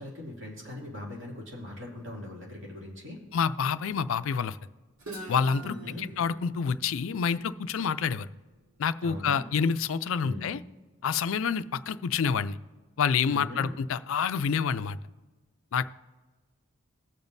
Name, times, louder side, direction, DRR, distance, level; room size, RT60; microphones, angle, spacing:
voice 1, 0.0-3.2 5.6-6.1 9.0-9.4 10.2-10.5 13.3-13.7, left 1 dB, 60° right, -3 dB, 2.7 m, -40 dB
voice 2, 3.3-4.6 5.3-8.3 8.8-10.6 11.0-12.6 13.0-15.0 15.7-15.8, left 6 dB, 65° left, 13 dB, 0.4 m, -28 dB
Guitar, 5.0-8.8, right 2 dB, 90° right, 2.0 m, -46 dB
21.0 x 7.0 x 2.7 m, 1.3 s
head